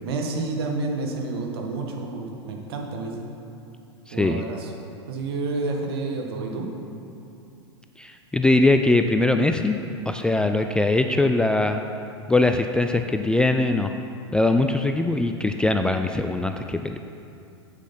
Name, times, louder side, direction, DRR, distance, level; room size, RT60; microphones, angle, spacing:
voice 1, 0.0-3.3 4.1-4.7 5.1-6.7, right 3 dB, 60° right, 1 dB, 1.6 m, -29 dB
voice 2, 4.1-4.4 8.0-9.8 10.1-11.8 12.3-13.9 14.3-17.0, left 2 dB, 5° left, 6 dB, 0.3 m, -21 dB
8.3 x 8.1 x 5.9 m, 2.7 s
figure-of-eight pair, 95°, 14 cm